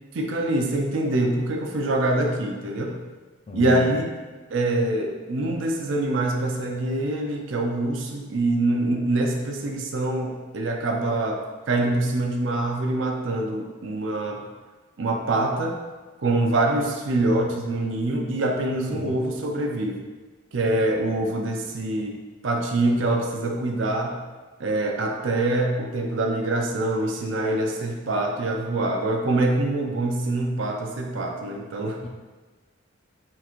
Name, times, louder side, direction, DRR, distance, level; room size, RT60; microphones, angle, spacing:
voice 1, 0.1-2.9 3.5-4.0 4.5-11.4 11.7-14.4 15.0-15.7 16.2-20.0 20.5-22.1 22.4-24.1 24.6-32.0, right 2 dB, 70° right, 1 dB, 0.5 m, -25 dB
voice 2, 3.5-4.1 18.9-19.3 32.0-32.1, left 3 dB, 30° left, 1 dB, 0.4 m, -36 dB
3.7 x 2.5 x 4.4 m, 1.3 s
head